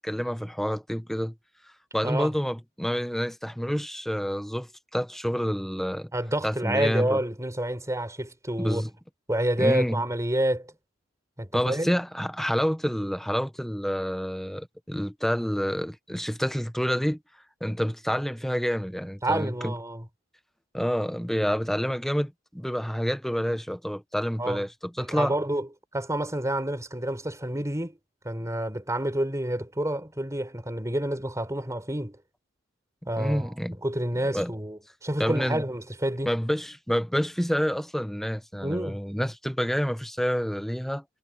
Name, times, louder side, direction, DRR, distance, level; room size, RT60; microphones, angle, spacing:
voice 1, 0.0-1.3 1.9-6.1 6.4-7.2 8.6-8.9 9.6-10.0 11.5-17.2 17.6-19.7 20.7-25.3 33.2-33.8 34.3-34.5 35.2-35.6 36.3-41.0, equal, ahead, 1.0 m, -28 dB
voice 2, 6.1-8.8 9.3-10.7 11.4-11.9 19.2-20.0 24.4-24.6 25.0-25.7 25.9-28.0 28.2-32.2 33.1-33.5 33.8-36.3 38.6-39.0, right 1 dB, 15° right, 4.6 m, -28 dB
head